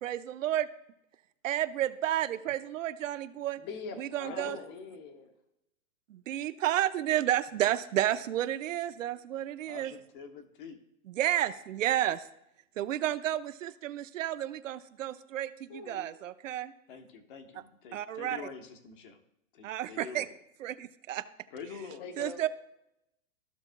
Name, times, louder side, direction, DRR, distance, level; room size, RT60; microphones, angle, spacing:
voice 1, 0.0-0.7 1.4-3.6 4.0-4.6 6.1-9.9 11.1-12.3 12.8-16.7 17.9-18.4 19.6-20.3 20.6-21.2 22.2-22.5, right 12 dB, 65° right, 12 dB, 0.7 m, -31 dB
voice 2, 3.6-5.3 15.7-16.2 22.0-22.5, left 5 dB, 20° left, 6 dB, 0.6 m, -43 dB
voice 3, 4.2-4.7 9.7-10.8 16.9-19.2 19.5-20.3 21.5-22.1, left 6 dB, 40° left, 5 dB, 1.1 m, -45 dB
15.0 x 5.9 x 2.2 m, 0.82 s
hypercardioid pair, 170°, 41 cm